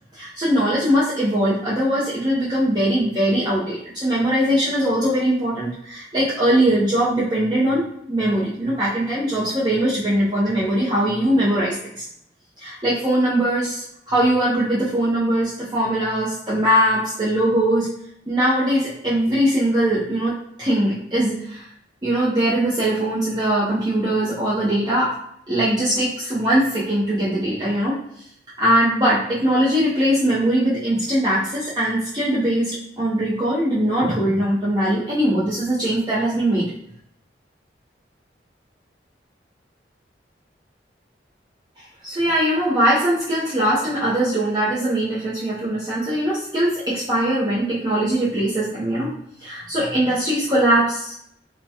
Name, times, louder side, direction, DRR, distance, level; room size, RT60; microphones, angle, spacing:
voice 1, 0.1-12.0 12.6-17.9 18.3-21.7 22.0-25.2 25.5-28.0 28.6-36.7 41.8-49.1 49.4-51.1, right 1 dB, 25° right, -8 dB, 0.6 m, -21 dB
3.4 x 2.1 x 2.7 m, 0.71 s
head